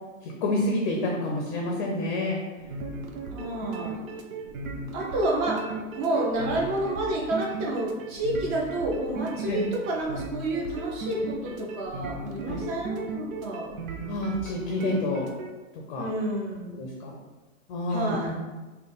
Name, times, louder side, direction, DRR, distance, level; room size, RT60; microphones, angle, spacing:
voice 1, 0.2-2.4 9.5-9.6 12.4-12.6 14.1-15.3 15.9-16.1 16.7-17.2 17.7-18.4, left 2 dB, 35° left, -1 dB, 0.5 m, -28 dB
sound 1, 2.6-15.5, right 3 dB, 70° right, 0.7 m, -36 dB
voice 2, 3.3-4.1 4.9-5.7 6.0-13.7 16.0-16.9 17.9-18.3, right 1 dB, 30° right, -2 dB, 0.8 m, -29 dB
3.3 x 2.3 x 3.9 m, 1.2 s
hypercardioid pair, 130°, 42 cm